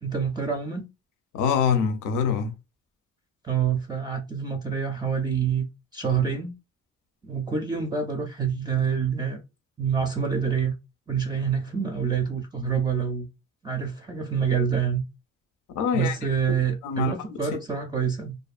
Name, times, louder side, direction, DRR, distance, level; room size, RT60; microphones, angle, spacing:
voice 1, 0.0-0.9 3.4-5.7 5.9-6.5 7.2-9.4 9.8-10.7 11.1-13.3 13.6-15.0 15.9-18.4, right 7 dB, 15° right, 0.4 m, -26 dB
voice 2, 1.3-2.5 15.7-16.3 16.8-17.6, left 7 dB, 90° left, 0.6 m, -25 dB
2.5 x 2.4 x 2.4 m
cardioid pair, 90°, 30 cm